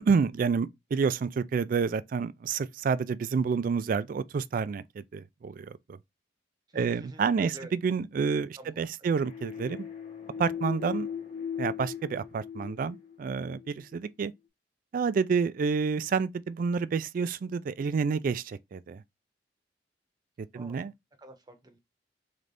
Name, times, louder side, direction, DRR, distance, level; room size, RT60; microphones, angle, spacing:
voice 1, 0.1-6.0 6.7-9.9 10.4-11.1 11.6-14.3 14.9-19.0 20.5-20.9, right 5 dB, 50° right, 0.3 m, -29 dB
voice 2, 6.7-7.7 8.6-9.1 20.5-20.9 21.2-21.8, right 1 dB, 25° right, 0.8 m, -48 dB
sound 1, 9.2-13.7, left 7 dB, 35° left, 0.9 m, -38 dB
3.8 x 3.2 x 3.3 m
head